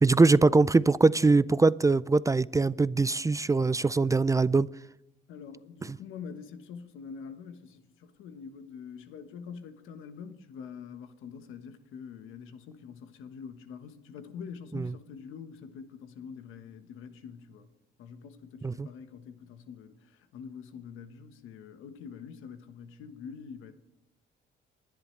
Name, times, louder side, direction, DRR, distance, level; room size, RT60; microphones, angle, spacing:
voice 1, 0.0-4.7 14.7-14.9 18.6-18.9, right 3 dB, 15° right, 0.3 m, -22 dB
voice 2, 5.3-17.7 18.0-23.7, left 6 dB, 90° left, 1.3 m, -45 dB
20.5 x 11.0 x 3.3 m
cardioid pair, 90°, 20 cm